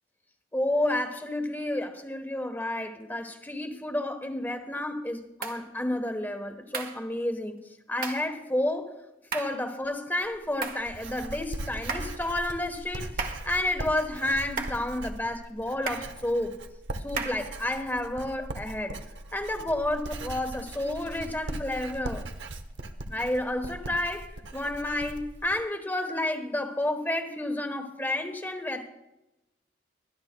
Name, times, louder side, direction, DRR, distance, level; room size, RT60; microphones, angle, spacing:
voice 1, 0.5-7.6 7.9-8.9 9.3-13.1 13.5-16.6 17.0-19.0 19.3-22.2 23.1-28.9, left 1 dB, 10° left, 1.1 m, -30 dB
sound 1, 5.4-5.6 6.7-7.0 8.0-8.3 9.3-9.6 10.6-10.9 11.9-12.2 13.2-13.5 14.6-14.9 15.9-16.2 17.2-17.5, right 4 dB, 50° right, 1.6 m, -34 dB
Writing, 10.2-25.6, right 1 dB, 70° right, 0.9 m, -39 dB
24.5 x 11.5 x 2.2 m
head